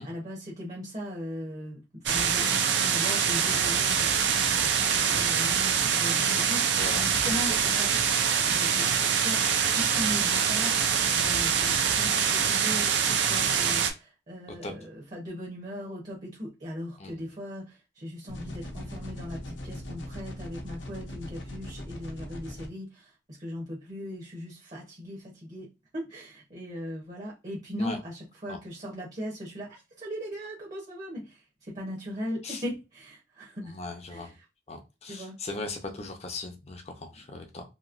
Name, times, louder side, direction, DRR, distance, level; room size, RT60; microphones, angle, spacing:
voice 1, 0.0-7.9 8.4-10.8 11.1-25.7 25.9-33.8 34.1-34.4 35.0-35.4, left 1 dB, 40° right, 0.8 m, -39 dB
sound 1, 2.1-13.9, right 7 dB, 75° right, 0.5 m, -25 dB
voice 2, 6.8-7.8 14.6-14.7 17.0-17.2 27.8-28.0 32.4-32.6 33.7-34.3 34.7-37.6, left 2 dB, 35° left, 0.6 m, -38 dB
sound 2, 18.3-22.7, left 1 dB, 90° left, 0.7 m, -40 dB
2.9 x 2.7 x 2.5 m
head